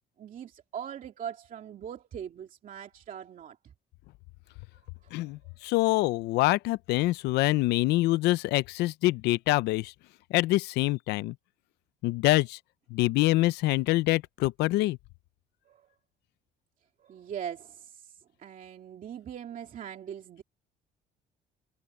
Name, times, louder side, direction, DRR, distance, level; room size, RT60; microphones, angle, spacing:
voice 1, 0.2-3.6 5.0-5.1 15.7-15.8 17.0-20.4, right 9 dB, 50° right, 2.4 m, -41 dB
voice 2, 5.1-9.9 10.3-11.3 12.0-12.6 12.9-15.0, left 18 dB, 85° left, 0.6 m, -25 dB
cardioid pair, 110°, 17 cm